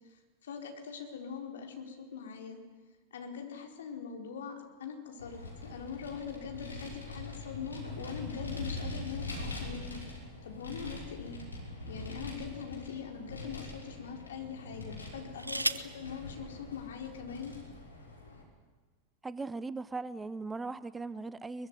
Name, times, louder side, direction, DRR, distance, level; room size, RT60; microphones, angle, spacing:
voice 1, 0.4-2.6 3.1-10.0 10.4-11.4 11.9-17.5, left 6 dB, 60° left, 3 dB, 4.4 m, -42 dB
Vehicle, 5.2-18.4, left 2 dB, 80° left, 5.8 m, -43 dB
sound 1, 11.2-12.4 13.2-13.3 15.0-16.0 17.2-17.3 17.6-18.0, right 2 dB, 85° right, 1.0 m, -37 dB
voice 2, 19.2-21.7, right 3 dB, 10° right, 17 dB, 0.7 m, -39 dB
23.0 x 22.5 x 9.8 m, 1.4 s
figure-of-eight pair, 90°, 0 cm